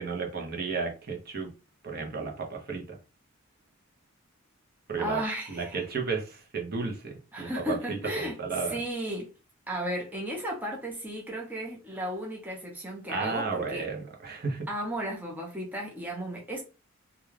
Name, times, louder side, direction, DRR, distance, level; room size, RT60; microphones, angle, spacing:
voice 1, 0.0-1.5 1.8-3.0 4.9-5.2 5.5-8.8 13.1-14.7, right 4 dB, 50° right, 0.7 m, -33 dB
voice 2, 5.0-5.8 7.3-9.3 9.7-13.9 14.7-16.6, equal, 10° right, 0.6 m, -34 dB
2.3 x 2.2 x 3.2 m
head